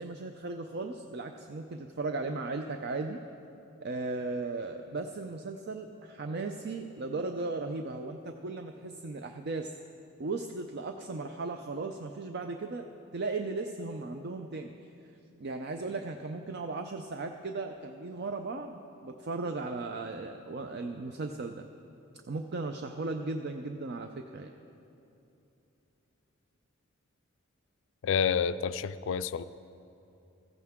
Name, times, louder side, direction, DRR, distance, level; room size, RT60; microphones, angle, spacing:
voice 1, 0.0-3.2 3.8-9.7 10.2-12.9 13.1-14.7 15.4-21.7 22.3-24.5, right 3 dB, 55° right, 5 dB, 0.5 m, -36 dB
voice 2, 28.0-29.4, left 7 dB, 65° left, 14 dB, 0.4 m, -29 dB
15.5 x 14.5 x 3.6 m, 2.8 s
head